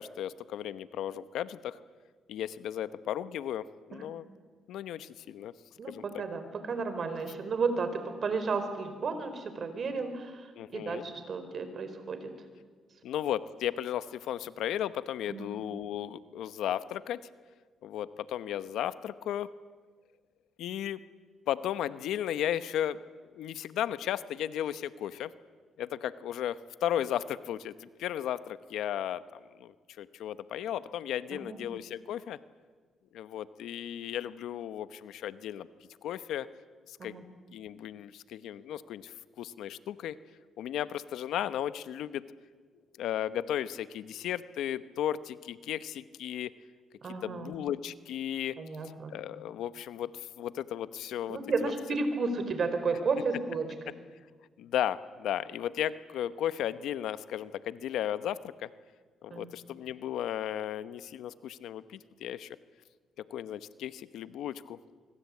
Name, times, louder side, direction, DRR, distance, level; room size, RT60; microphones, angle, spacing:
voice 1, 0.0-1.8 2.3-4.3 4.7-5.5 5.9-6.2 10.5-11.0 13.0-17.2 17.8-19.5 20.6-21.0 21.5-25.3 25.8-32.4 33.1-35.7 36.0-36.5 36.9-37.1 37.5-40.2 40.6-42.3 43.0-46.5 47.2-48.6 49.1-51.7 54.6-58.7 59.2-62.6 63.3-64.8, left 11 dB, 80° left, 14 dB, 0.9 m, -35 dB
voice 2, 5.8-10.5 10.7-12.2 15.3-15.5 31.3-31.6 37.0-37.2 47.0-47.5 48.6-49.2 51.3-53.9 59.3-59.5, right 4 dB, 50° right, 9 dB, 4.5 m, -33 dB
24.5 x 24.0 x 8.5 m, 1.5 s
cardioid pair, 90°, 0 cm